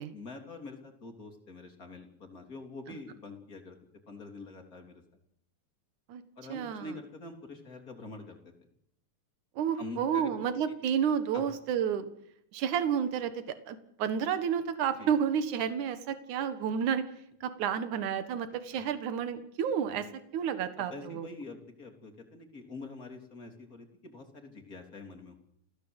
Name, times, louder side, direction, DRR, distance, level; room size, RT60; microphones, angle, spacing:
voice 1, 0.1-3.8 4.1-5.0 6.4-8.5 9.8-10.4 11.3-11.4 15.0-15.1 20.8-25.4, left 3 dB, 30° left, 4 dB, 3.9 m, -45 dB
voice 2, 6.5-7.0 9.6-12.1 12.5-17.0 17.4-20.1 20.3-21.3, right 8 dB, 80° right, 10 dB, 2.9 m, -31 dB
29.0 x 16.5 x 8.1 m, 0.74 s
omnidirectional pair, 3.5 m